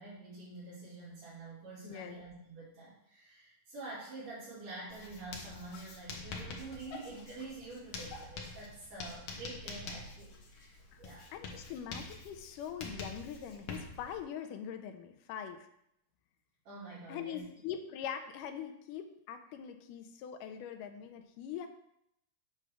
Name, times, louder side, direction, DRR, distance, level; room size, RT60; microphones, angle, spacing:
voice 1, 0.0-11.3 16.7-17.4, right 2 dB, 85° right, -13 dB, 4.4 m, -47 dB
voice 2, 1.8-2.2 10.9-11.0 11.3-15.7 17.1-21.7, left 8 dB, 85° left, 6 dB, 2.2 m, -42 dB
Writing, 4.9-14.2, left 3 dB, 65° left, 1.8 m, -46 dB
8.2 x 3.5 x 6.0 m, 0.76 s
omnidirectional pair, 3.7 m